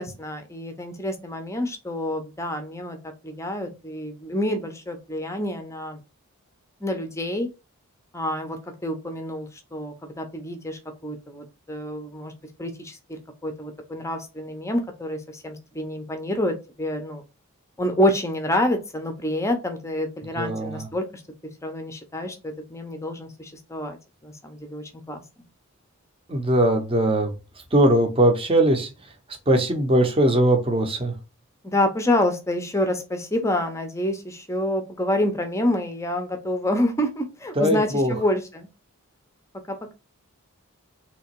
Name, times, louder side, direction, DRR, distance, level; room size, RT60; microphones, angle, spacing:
voice 1, 0.0-3.0 3.2-6.0 6.8-7.5 8.1-12.3 12.6-17.2 17.8-21.2 21.6-24.0 24.2-25.2 31.6-38.7 39.7-39.9, left 1 dB, 15° left, 6 dB, 0.6 m, -27 dB
voice 2, 20.4-20.9 26.3-27.3 27.7-28.9 29.5-31.1 37.6-38.1, right 1 dB, 25° right, 5 dB, 0.8 m, -20 dB
3.5 x 2.9 x 4.5 m, 0.29 s
head